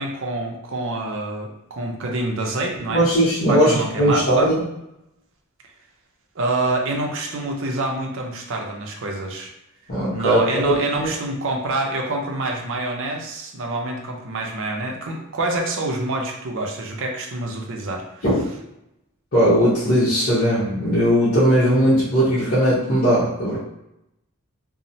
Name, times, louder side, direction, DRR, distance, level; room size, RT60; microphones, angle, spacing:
voice 1, 0.0-3.0 3.5-4.5 6.4-9.5 10.1-18.0, right 2 dB, 60° right, 1 dB, 0.5 m, -26 dB
voice 2, 2.9-4.6 9.9-11.1 18.2-18.4 19.3-23.6, equal, 45° left, -12 dB, 0.9 m, -18 dB
3.0 x 2.0 x 2.6 m, 0.83 s
head